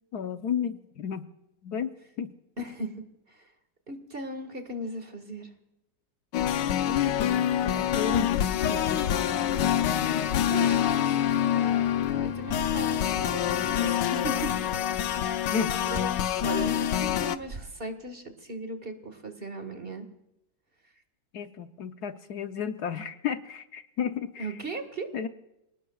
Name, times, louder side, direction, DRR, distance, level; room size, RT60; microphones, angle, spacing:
voice 1, 0.1-1.3 1.6-2.3 6.9-9.0 15.5-15.7 21.3-24.6 25.1-25.3, left 7 dB, 65° left, 8 dB, 1.3 m, -33 dB
voice 2, 2.6-3.4 3.9-5.5 10.5-11.8 12.2-14.5 15.2-15.6 15.9-20.1 24.4-25.1, right 1 dB, 35° right, 7 dB, 1.7 m, -37 dB
sound 1, 6.3-17.4, left 10 dB, 85° left, 1.4 m, -26 dB
sound 2, 8.7-15.0, left 4 dB, 15° left, 0.8 m, -43 dB
sound 3, 15.8-16.3 17.1-18.3, right 4 dB, 50° right, 0.5 m, -45 dB
28.5 x 19.0 x 2.4 m, 0.87 s
omnidirectional pair, 1.9 m